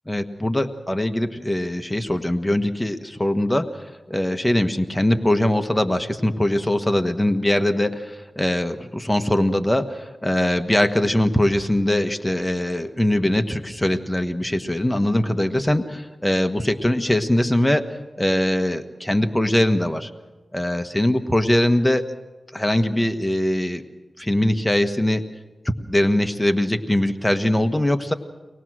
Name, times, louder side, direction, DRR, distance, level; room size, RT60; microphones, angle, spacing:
voice 1, 0.1-17.9 18.2-20.1 20.5-22.0 22.5-23.8 24.2-25.2 25.8-28.1, left 1 dB, 15° left, 7 dB, 1.4 m, -21 dB
24.0 x 18.5 x 6.3 m, 1.2 s
cardioid pair, 50°, 0 cm